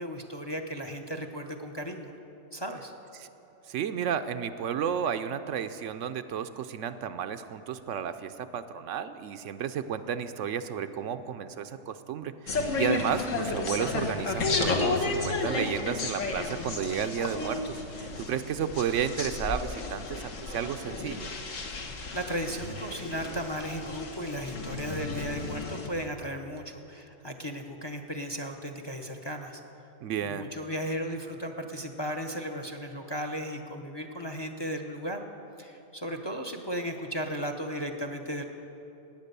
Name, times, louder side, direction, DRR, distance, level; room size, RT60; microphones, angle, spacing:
voice 1, 0.0-2.1 2.5-2.9 22.1-29.6 30.2-35.2 35.6-38.4, equal, 25° left, 5 dB, 0.7 m, -35 dB
voice 2, 3.7-21.3 30.0-30.5, right 8 dB, 75° right, 10 dB, 0.9 m, -32 dB
sound 1, 12.5-25.9, left 3 dB, 75° left, 1.7 m, -32 dB
18.0 x 9.2 x 6.7 m, 3.0 s
omnidirectional pair, 1.3 m